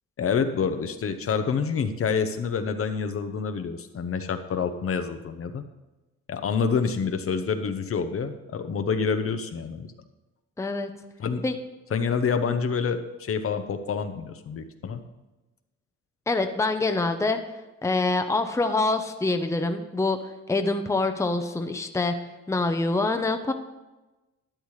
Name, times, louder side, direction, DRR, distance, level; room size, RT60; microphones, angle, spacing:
voice 1, 0.2-5.6 6.3-9.9 11.2-11.4 11.9-15.0, left 6 dB, 50° left, 8 dB, 0.8 m, -27 dB
voice 2, 10.6-10.9 11.4-11.5 16.3-17.4 17.8-20.2 20.5-22.1 22.5-23.5, left 3 dB, 10° left, 6 dB, 0.8 m, -25 dB
12.0 x 10.0 x 3.2 m, 1.1 s
cardioid pair, 90°, 30 cm